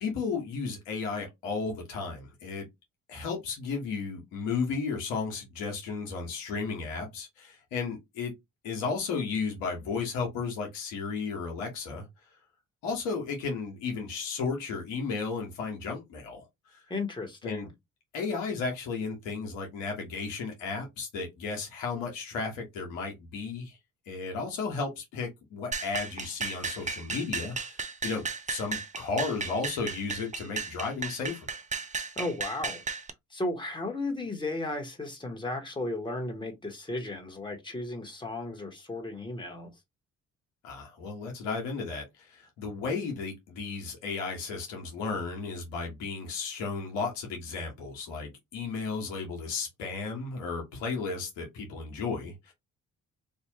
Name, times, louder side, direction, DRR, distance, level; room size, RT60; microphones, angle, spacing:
voice 1, 0.0-2.7 3.1-8.3 8.6-12.0 12.8-16.8 17.4-17.7 18.1-23.8 24.1-31.5 40.6-52.5, left 4 dB, 85° left, 1.2 m, -34 dB
voice 2, 16.9-17.7 32.2-32.8 33.3-39.7, left 2 dB, 10° left, 1.5 m, -34 dB
sound 1, 25.7-33.1, right 5 dB, 20° right, 0.6 m, -35 dB
3.6 x 2.5 x 2.8 m
hypercardioid pair, 50°, 37 cm